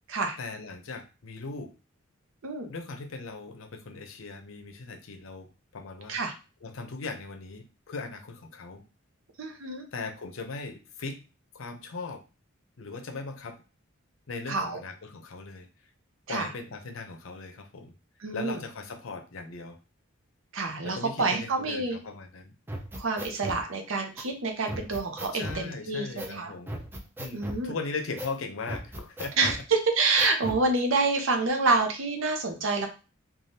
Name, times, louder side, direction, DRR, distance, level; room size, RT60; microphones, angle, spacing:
voice 1, 0.4-1.7 2.7-6.2 6.6-8.8 9.9-11.2 11.5-12.2 12.8-13.6 14.3-15.7 16.3-17.9 18.3-19.8 20.8-22.5 25.3-26.7 27.2-29.5, left 3 dB, 80° left, 7 dB, 0.6 m, -39 dB
voice 2, 9.4-9.8 14.5-14.8 16.3-16.5 18.2-18.6 20.5-22.0 23.0-26.5 27.3-27.7 29.4-32.9, right 3 dB, 75° right, 4 dB, 0.7 m, -27 dB
sound 1, 22.7-23.6 24.2-24.3 24.7-25.6 26.2-26.4 26.7-27.6 28.2-28.4 28.7-29.6 30.2-30.6, right 1 dB, 10° right, 0.4 m, -37 dB
3.3 x 2.3 x 2.7 m, 0.32 s
head